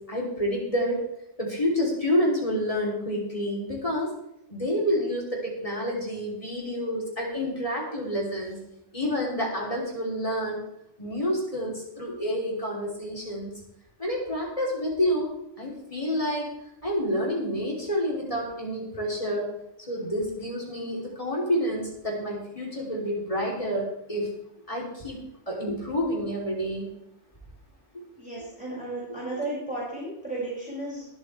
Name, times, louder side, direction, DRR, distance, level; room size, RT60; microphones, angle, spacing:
voice 1, 0.1-1.0 1.4-4.1 4.5-8.6 8.9-10.6 11.0-13.5 14.0-15.3 15.6-16.5 16.8-19.5 19.9-24.3 24.7-26.9, equal, 30° left, -3 dB, 3.5 m, -28 dB
voice 2, 28.2-31.1, right 2 dB, 5° right, -8 dB, 5.9 m, -34 dB
22.0 x 8.0 x 3.4 m, 0.80 s
omnidirectional pair, 1.2 m